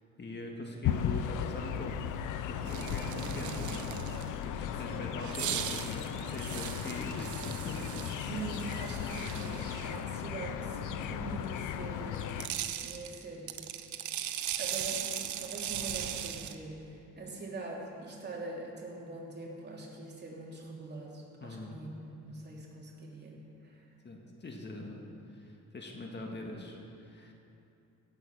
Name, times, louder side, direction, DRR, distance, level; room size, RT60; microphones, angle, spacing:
voice 1, 0.2-2.1 2.5-8.0 21.4-21.8 24.0-27.3, left 2 dB, 35° left, 1 dB, 1.8 m, -43 dB
sound 1, 0.8-12.5, left 9 dB, 85° left, 0.7 m, -36 dB
sound 2, 2.6-4.4 5.2-10.0 12.2-16.6, right 10 dB, 75° right, 0.9 m, -38 dB
voice 2, 4.8-5.3 8.3-12.4 12.8-13.6 14.6-23.8, right 2 dB, 35° right, -3 dB, 3.1 m, -43 dB
17.0 x 7.8 x 6.2 m, 2.7 s
cardioid pair, 90°, 30 cm